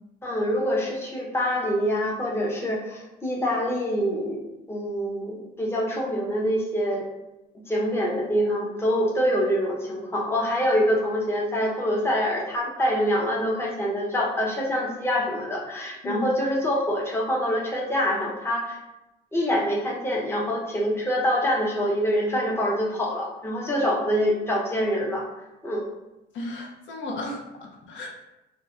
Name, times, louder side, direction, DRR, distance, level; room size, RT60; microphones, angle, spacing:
voice 1, 0.2-4.4 4.7-7.1 7.7-18.8 19.3-25.3 25.6-25.9, equal, 10° left, -3 dB, 0.6 m, -25 dB
voice 2, 26.3-28.1, left 2 dB, 70° left, 0 dB, 0.5 m, -34 dB
2.6 x 2.1 x 2.2 m, 0.96 s
cardioid pair, 90°, 20 cm